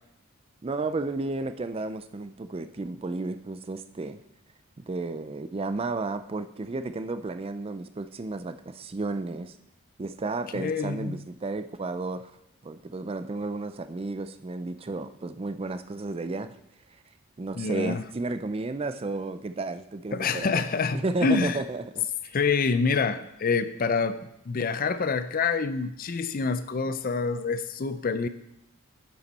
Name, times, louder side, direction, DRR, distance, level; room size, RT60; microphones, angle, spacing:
voice 1, 0.6-4.2 4.8-9.6 10.0-12.3 12.6-16.5 17.4-20.6 20.9-22.1, right 3 dB, 25° right, 11 dB, 0.4 m, -32 dB
voice 2, 10.5-11.2 17.6-18.0 20.1-21.6 22.3-24.2 24.5-28.3, left 4 dB, 40° left, 12 dB, 0.4 m, -27 dB
10.5 x 7.2 x 4.1 m, 0.81 s
head